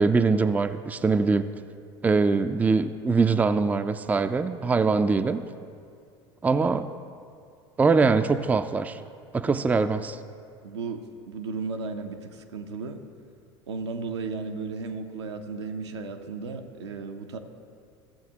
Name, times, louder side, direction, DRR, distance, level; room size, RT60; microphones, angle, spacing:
voice 1, 0.0-1.5 2.0-5.4 6.4-6.9 7.8-9.0 9.3-10.2, right 4 dB, 10° right, 10 dB, 0.3 m, -23 dB
voice 2, 10.6-13.0 13.7-17.4, right 4 dB, 85° right, 5 dB, 0.6 m, -35 dB
14.0 x 7.2 x 2.8 m, 2.3 s
hypercardioid pair, 75°, 14 cm